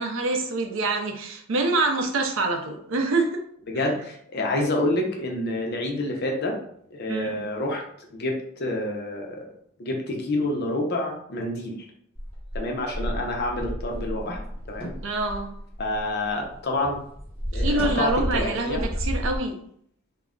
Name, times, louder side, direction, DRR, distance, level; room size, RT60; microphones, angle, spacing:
voice 1, 0.0-3.4 7.1-7.3 15.0-15.6 17.5-19.6, right 2 dB, 65° right, 4 dB, 0.5 m, -26 dB
voice 2, 3.7-6.6 6.9-7.8 8.1-8.3 8.6-9.5 9.8-11.9 12.5-14.4 14.7-14.9 15.8-17.0 17.5-18.9, left 1 dB, 50° left, 1 dB, 0.6 m, -28 dB
sound 1, 12.2-16.6 16.8-19.4, equal, 25° left, 0.9 m, -31 dB
2.3 x 2.1 x 3.6 m, 0.66 s
head